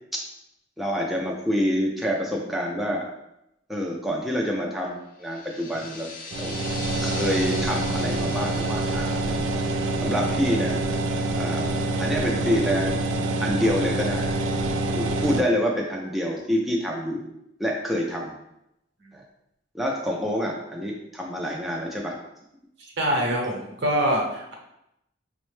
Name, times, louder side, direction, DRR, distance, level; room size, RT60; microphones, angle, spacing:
voice 1, 0.8-3.1 3.7-6.1 6.4-6.6 7.0-9.6 10.0-10.8 11.3-14.3 14.9-17.2 17.6-18.3 19.1-19.2 19.7-22.1, equal, ahead, -2 dB, 0.4 m, -27 dB
sound 1, 5.2-11.5, left 3 dB, 45° left, 0.6 m, -40 dB
sound 2, 6.3-15.4, right 2 dB, 85° right, 0.4 m, -26 dB
voice 2, 23.0-24.5, equal, 65° right, -1 dB, 0.9 m, -25 dB
5.3 x 2.1 x 3.1 m, 0.83 s
head